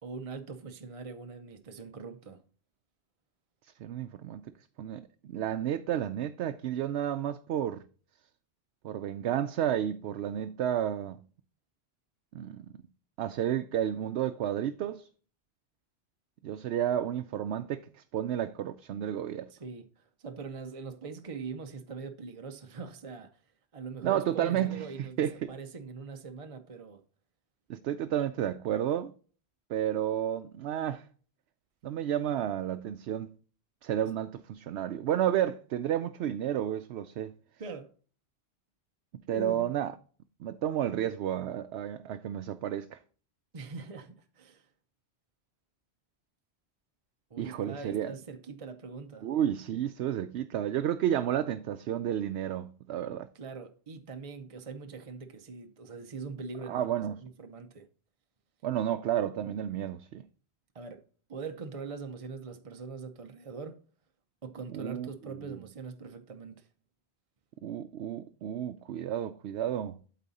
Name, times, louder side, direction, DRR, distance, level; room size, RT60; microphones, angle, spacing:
voice 1, 0.0-2.4 19.5-23.4 23.7-27.0 37.6-37.9 39.3-39.7 43.5-44.7 47.3-49.3 53.3-57.9 60.7-61.0 61.3-63.8 64.4-66.7, right 4 dB, 35° right, 0.7 m, -42 dB
voice 2, 3.8-4.5 4.8-7.8 8.8-11.2 12.3-12.7 13.2-15.1 16.4-19.5 24.0-24.9 25.2-25.5 27.7-29.1 29.7-31.0 31.8-33.3 33.8-37.3 39.3-39.9 40.4-43.0 47.4-48.1 49.2-53.3 56.7-57.2 58.6-60.2 64.7-65.1 65.4-65.6 67.6-70.0, right 10 dB, 80° right, 0.8 m, -31 dB
12.0 x 4.1 x 4.1 m
omnidirectional pair, 1.1 m